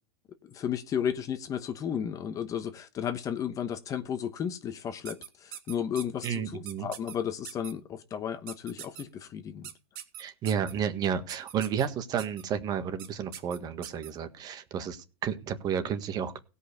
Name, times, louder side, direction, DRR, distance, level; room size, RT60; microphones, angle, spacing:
voice 1, 0.4-9.7, left 8 dB, 25° left, 1.1 m, -33 dB
sound 1, 5.1-6.3 6.7-7.1 7.4-7.7 8.5-9.0 9.6-10.7 11.3-11.9 12.2-12.4 13.0-13.1 13.3-14.1, right 10 dB, 55° right, 3.4 m, -42 dB
voice 2, 6.2-6.9 10.2-16.4, right 8 dB, 30° right, 1.6 m, -32 dB
16.5 x 5.6 x 6.8 m
hypercardioid pair, 130°, 13 cm